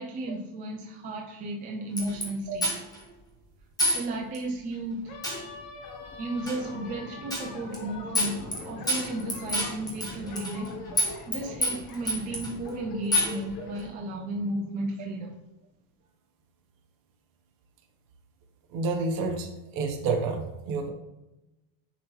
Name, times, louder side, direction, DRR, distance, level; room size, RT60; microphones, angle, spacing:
voice 1, 0.0-2.7 3.9-5.3 6.2-10.8 11.3-15.4, right 1 dB, 20° right, 0.4 m, -34 dB
sound 1, 2.0-2.2 2.6-3.0 3.8-4.0 4.3-4.4 5.2-5.4 6.5-6.6 7.3-7.5 7.7-7.8 8.1-8.6 8.9-10.7 11.0-11.4 11.6-12.5 13.1-13.4, left 1 dB, 10° left, 1.1 m, -27 dB
sound 2, 5.1-13.9, left 3 dB, 70° left, 1.3 m, -42 dB
voice 2, 18.7-20.9, right 4 dB, 50° right, 1.2 m, -29 dB
9.8 x 3.7 x 3.2 m
cardioid pair, 160°, 45 cm